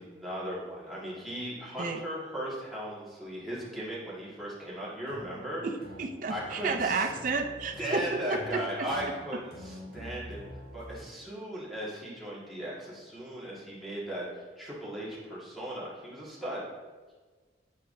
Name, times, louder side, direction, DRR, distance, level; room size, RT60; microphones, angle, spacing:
voice 1, 0.0-5.6 6.3-7.1 7.8-10.4 10.7-16.6, equal, ahead, -8 dB, 1.7 m, -37 dB
sound 1, 5.1-10.9, equal, 65° left, 1.3 m, -46 dB
voice 2, 5.6-8.9, right 4 dB, 45° right, 5 dB, 0.5 m, -31 dB
8.0 x 4.6 x 2.6 m, 1.4 s
head